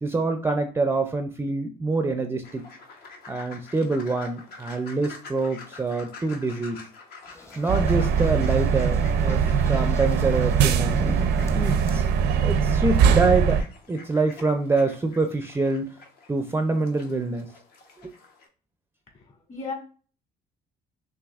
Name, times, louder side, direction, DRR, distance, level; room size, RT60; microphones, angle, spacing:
voice 1, 0.0-2.7 3.3-6.8 7.6-11.0 11.5-12.1 12.4-13.6 13.9-15.9 16.3-17.5 18.0-18.1, right 3 dB, 15° right, 6 dB, 0.4 m, -25 dB
sound 1, 2.4-18.5, left 4 dB, 65° left, 1.0 m, -47 dB
sound 2, 7.3-11.9, left 1 dB, 15° left, 0.7 m, -40 dB
sound 3, 7.7-13.6, right 7 dB, 80° right, 0.5 m, -21 dB
voice 2, 19.1-19.7, left 4 dB, 40° left, 1 dB, 1.9 m, -36 dB
5.9 x 2.8 x 2.4 m, 0.38 s
cardioid pair, 110°, 17 cm